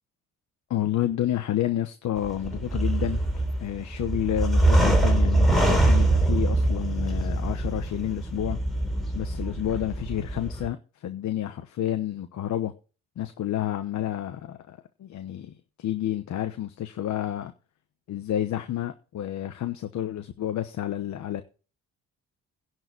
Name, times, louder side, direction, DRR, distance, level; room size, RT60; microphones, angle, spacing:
voice 1, 0.7-3.2 3.6-8.6 9.1-12.7 13.2-17.5 18.1-21.4, left 12 dB, 70° left, 1.1 m, -30 dB
sound 1, 2.2-10.7, right 2 dB, ahead, 3.9 m, -23 dB
11.0 x 4.8 x 8.2 m
cardioid pair, 90°, 30 cm